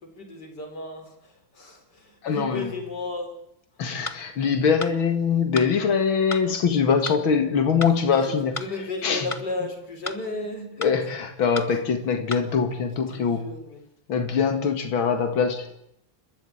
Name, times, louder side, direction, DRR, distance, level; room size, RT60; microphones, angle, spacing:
voice 1, 0.0-3.3 8.2-10.9 11.7-11.8 13.1-13.9, left 2 dB, 55° left, 4.7 m, -34 dB
voice 2, 2.2-2.7 3.8-8.5 9.0-9.3 10.8-13.5 14.1-15.8, left 6 dB, 90° left, 2.7 m, -23 dB
sound 1, 4.1-4.2 4.8-5.0 5.6-5.7 6.3-6.5 7.1-7.2 7.8-8.0 8.6-8.7 9.3-9.5 10.1-10.2 10.8-11.0 11.6-11.7 12.3-12.5, left 3 dB, 20° left, 1.1 m, -33 dB
30.0 x 13.5 x 8.6 m
omnidirectional pair, 2.1 m